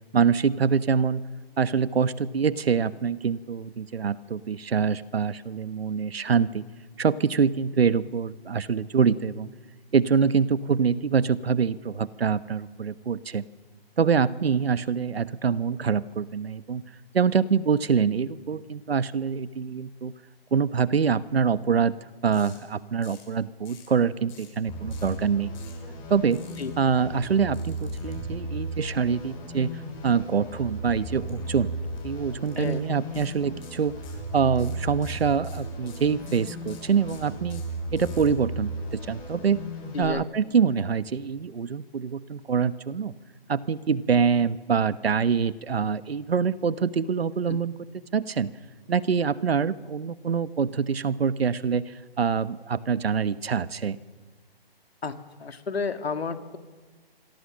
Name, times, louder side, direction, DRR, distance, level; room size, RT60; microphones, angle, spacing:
voice 1, 0.1-1.2 1.6-6.6 7.0-9.5 9.9-13.4 14.0-16.8 17.1-20.1 20.5-21.9 22.2-25.5 26.1-26.4 26.8-31.7 32.0-33.9 34.3-37.6 37.9-39.6 40.0-43.1 43.5-47.7 48.1-48.5 48.9-54.0, right 6 dB, 80° right, 15 dB, 1.2 m, -25 dB
sound 1, 22.3-22.6 23.0-23.3 23.6-23.9 24.3-24.6 24.9-25.1 25.5-25.8 26.3-26.6 27.5-28.1 31.3-31.5 31.8-32.0 32.4-32.7 33.1-33.3 33.6-34.2 34.5-38.3, left 7 dB, 50° left, 6.6 m, -51 dB
sound 2, 24.7-40.0, right 1 dB, 15° left, 6.3 m, -36 dB
voice 2, 39.9-40.3 47.5-47.6 55.0-55.1 55.4-56.6, left 4 dB, 85° left, 8 dB, 2.2 m, -31 dB
26.5 x 22.5 x 6.4 m, 1.4 s
hypercardioid pair, 160°, 30 cm